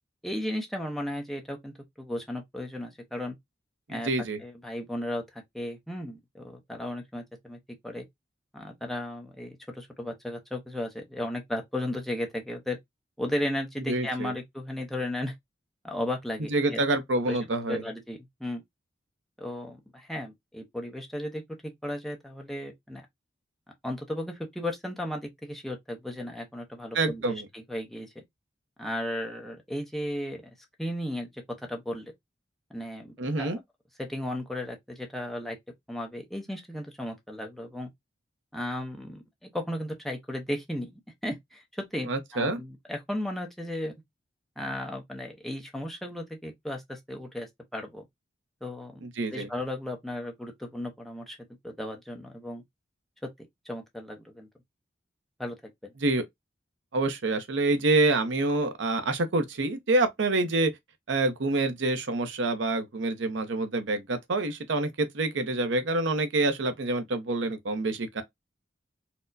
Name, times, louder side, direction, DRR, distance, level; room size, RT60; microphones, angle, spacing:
voice 1, 0.2-3.3 3.9-4.1 4.4-7.6 7.8-8.0 8.5-12.8 13.2-15.3 15.8-16.8 17.3-17.4 17.7-18.6 19.4-21.4 21.8-23.0 23.8-28.2 28.8-30.4 30.8-31.4 31.7-32.1 32.7-33.6 34.0-35.6 35.9-37.9 38.5-40.9 41.2-43.9 44.6-47.5 47.7-48.1 48.6-49.0 49.3-51.4 51.6-52.6 53.4-54.5 55.4-55.7, left 1 dB, ahead, 0.6 m, -35 dB
voice 2, 3.9-4.4 13.9-14.3 16.5-17.8 26.9-27.5 33.2-33.6 42.1-42.6 49.0-49.5 56.0-56.2 56.9-60.7 61.1-68.2, right 2 dB, 75° right, 0.7 m, -27 dB
4.2 x 2.1 x 2.5 m
head